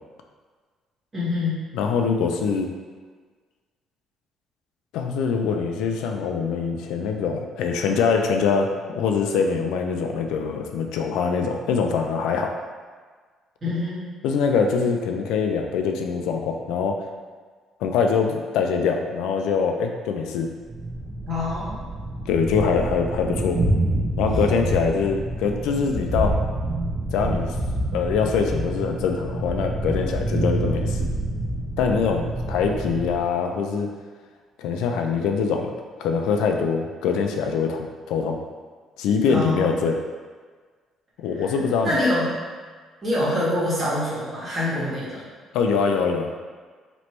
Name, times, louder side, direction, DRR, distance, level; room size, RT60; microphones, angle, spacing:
voice 1, 1.1-1.6 13.6-14.1 21.2-21.8 39.3-39.7 41.4-41.5 41.8-42.4 43.0-45.3, left 1 dB, 25° right, -8 dB, 1.5 m, -25 dB
voice 2, 1.7-2.7 4.9-12.5 14.2-17.0 17.8-20.5 22.3-23.6 24.2-26.4 27.1-27.6 27.9-31.1 31.8-33.9 34.6-35.7 36.0-38.4 39.0-40.0 41.2-42.0 45.5-46.4, left 5 dB, 90° left, 3 dB, 0.4 m, -23 dB
Thunder, 20.7-33.3, right 1 dB, 60° right, 1.0 m, -27 dB
3.1 x 3.0 x 4.4 m, 1.5 s
cardioid pair, 130°, 0 cm